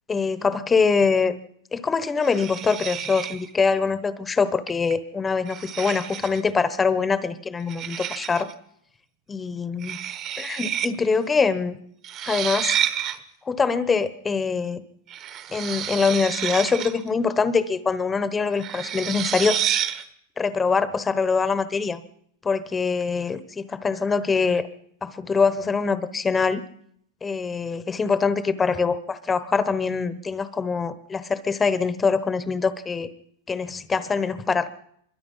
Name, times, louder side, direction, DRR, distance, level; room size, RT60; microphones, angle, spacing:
voice 1, 0.1-1.3 1.7-8.5 9.3-10.0 10.4-11.8 12.3-12.8 13.4-14.8 15.5-19.6 20.4-22.0 22.4-24.7 25.0-26.6 27.2-33.1 33.5-34.7, left 5 dB, 10° left, 13 dB, 1.0 m, -24 dB
sound 1, 2.2-3.5 4.7-4.9 5.5-6.5 7.7-8.5 9.8-10.9 11.1-11.2 12.0-13.2 15.1-17.1 18.6-20.0, right 10 dB, 30° right, 1.3 m, -29 dB
25.5 x 22.5 x 5.6 m, 0.71 s
supercardioid pair, 170°, 0 cm